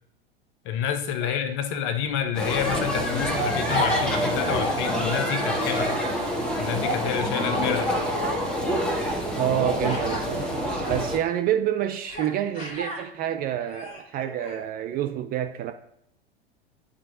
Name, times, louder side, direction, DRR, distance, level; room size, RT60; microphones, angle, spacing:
voice 1, 0.6-6.0 6.6-7.9, left 8 dB, 40° left, 0.8 m, -28 dB
Human voice, 2.1-2.2 2.4-4.0 4.4-4.9 5.5-6.0 7.5-8.0 9.8-10.2 10.8-11.1 12.0-12.3 12.5-13.0 13.6-14.7, left 2 dB, 20° left, 1.8 m, -34 dB
sound 1, 2.3-11.2, equal, 5° left, 1.3 m, -26 dB
voice 2, 9.4-15.7, right 11 dB, 30° right, 0.4 m, -28 dB
11.5 x 4.5 x 2.6 m
figure-of-eight pair, 85°, 32 cm